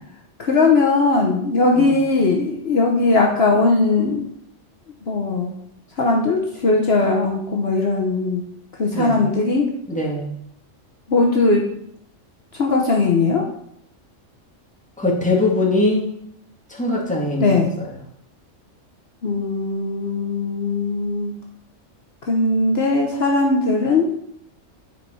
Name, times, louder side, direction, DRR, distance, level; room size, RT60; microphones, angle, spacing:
voice 1, 0.4-4.2 5.0-5.5 6.0-8.4 8.8-9.7 11.1-11.6 12.6-13.4 17.4-17.7 19.2-21.3 22.3-24.0, left 3 dB, 55° left, 0 dB, 1.2 m, -19 dB
voice 2, 8.9-9.2 9.9-10.3 15.0-16.1 16.7-17.9, left 2 dB, 5° left, -3 dB, 2.0 m, -22 dB
10.0 x 4.7 x 5.5 m, 0.73 s
omnidirectional pair, 1.3 m